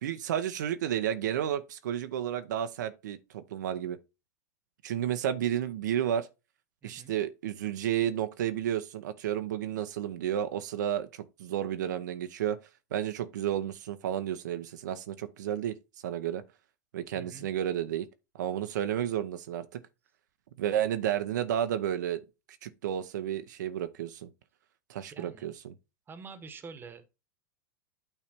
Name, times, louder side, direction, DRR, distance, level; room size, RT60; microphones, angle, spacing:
voice 1, 0.0-4.0 4.8-6.3 6.8-12.6 12.9-15.7 16.0-16.4 16.9-18.1 18.4-19.6 20.6-22.2 22.6-24.3 24.9-25.7, right 10 dB, 80° right, 0.7 m, -31 dB
voice 2, 6.8-7.1 17.1-17.5 25.1-25.5 26.1-27.2, right 5 dB, 20° right, 1.2 m, -46 dB
8.9 x 3.3 x 4.4 m
hypercardioid pair, 115°, 10 cm